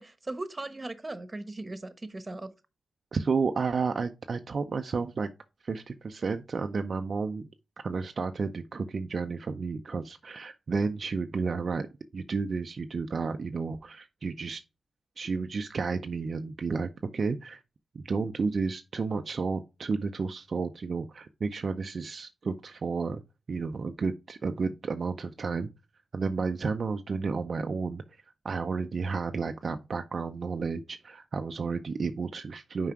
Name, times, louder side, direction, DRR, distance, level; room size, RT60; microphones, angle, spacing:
voice 1, 0.0-2.5, right 2 dB, 30° right, 1.1 m, -38 dB
voice 2, 3.1-5.3 5.6-7.4 7.8-11.9 12.1-14.6 15.2-17.6 17.9-23.2 23.5-25.7 26.1-28.0 28.4-32.9, right 4 dB, 60° right, 0.5 m, -31 dB
5.7 x 4.8 x 4.7 m
cardioid pair, 55°, 0 cm